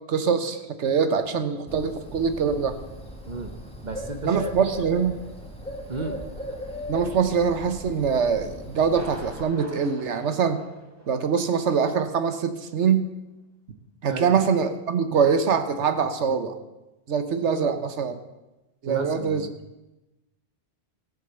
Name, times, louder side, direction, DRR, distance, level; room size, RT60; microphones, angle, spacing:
voice 1, 0.1-2.8 4.2-5.2 6.9-10.6 11.1-13.1 14.0-16.6 17.1-18.2 18.8-19.5, right 6 dB, 90° right, 10 dB, 1.3 m, -23 dB
Bird, 1.7-9.4, equal, 5° left, 1.9 m, -38 dB
voice 2, 3.3-3.6 3.8-4.5 5.9-6.2 14.1-14.4 18.9-19.6, right 3 dB, 45° right, 7 dB, 1.1 m, -33 dB
Thunder, 8.8-11.4 11.7-11.8 12.3-12.4, right 1 dB, 15° right, 2.3 m, -43 dB
14.5 x 8.5 x 6.9 m, 1.0 s
omnidirectional pair, 1.1 m